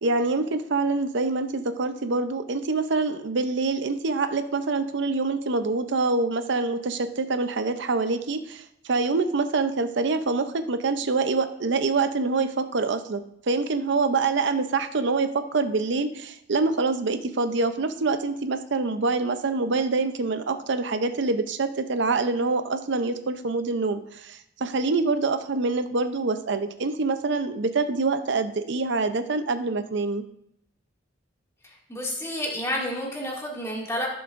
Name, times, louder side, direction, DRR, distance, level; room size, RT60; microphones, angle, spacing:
voice 1, 0.0-30.2, right 3 dB, 65° right, 9 dB, 0.6 m, -25 dB
voice 2, 31.9-34.1, equal, 15° left, -3 dB, 2.2 m, -30 dB
15.0 x 7.0 x 2.6 m, 0.76 s
head